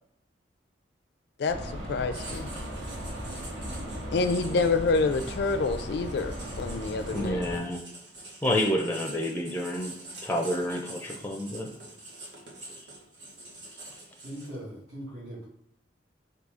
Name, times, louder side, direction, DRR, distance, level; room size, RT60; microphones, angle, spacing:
voice 1, 1.4-2.5 4.1-7.4, left 3 dB, 65° left, 8 dB, 0.4 m, -27 dB
sound 1, 1.5-7.6, equal, 40° right, 1.9 m, -37 dB
Writing, 2.1-14.7, right 2 dB, 85° right, 1.3 m, -46 dB
voice 2, 7.1-7.8 8.4-9.9 10.2-11.7, left 1 dB, 10° left, 2 dB, 0.5 m, -29 dB
voice 3, 14.2-15.5, equal, 60° right, -9 dB, 1.6 m, -40 dB
4.0 x 2.7 x 4.8 m, 0.70 s
head